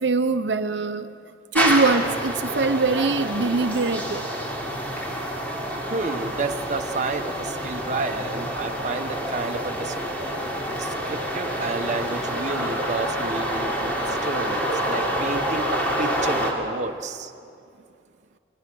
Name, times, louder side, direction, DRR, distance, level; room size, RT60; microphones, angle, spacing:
voice 1, 0.0-1.1 1.5-4.2, right 3 dB, 85° right, 8 dB, 0.8 m, -22 dB
sound 1, 1.5-16.5, equal, 10° left, 3.1 m, -27 dB
voice 2, 5.9-9.9 10.4-17.3, right 3 dB, 45° right, 5 dB, 1.1 m, -31 dB
27.5 x 21.0 x 6.2 m, 2.4 s
head